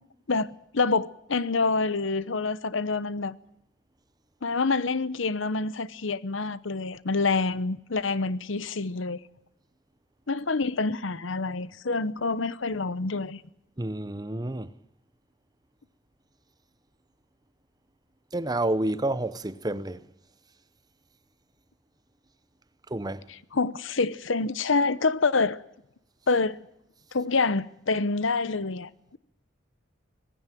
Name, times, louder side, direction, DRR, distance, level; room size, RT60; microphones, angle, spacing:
voice 1, 0.7-3.4 4.4-9.2 10.3-13.4 23.5-25.6 26.3-26.6 27.1-29.2, left 3 dB, 75° left, 0.9 m, -27 dB
voice 2, 13.8-14.7 18.3-20.0 22.9-23.2, right 1 dB, 20° right, 0.8 m, -29 dB
19.5 x 16.0 x 9.1 m
head